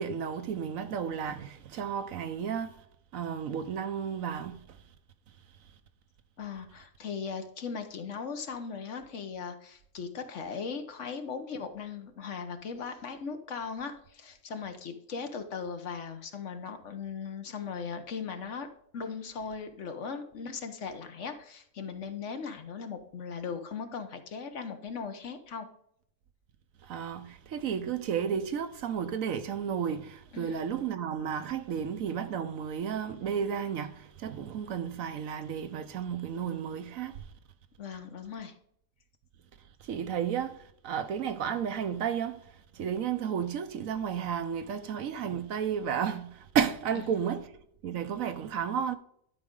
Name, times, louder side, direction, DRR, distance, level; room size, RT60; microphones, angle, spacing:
voice 1, 0.0-2.7 3.1-4.6 26.9-37.1 39.9-40.6 40.8-42.4 42.8-46.3 46.5-47.4 47.8-49.0, right 8 dB, 75° right, 1.2 m, -32 dB
voice 2, 6.4-18.7 18.9-25.7 30.3-30.6 37.8-38.5 46.9-47.2, left 5 dB, 60° left, 1.2 m, -38 dB
11.5 x 5.1 x 3.7 m
omnidirectional pair, 1.4 m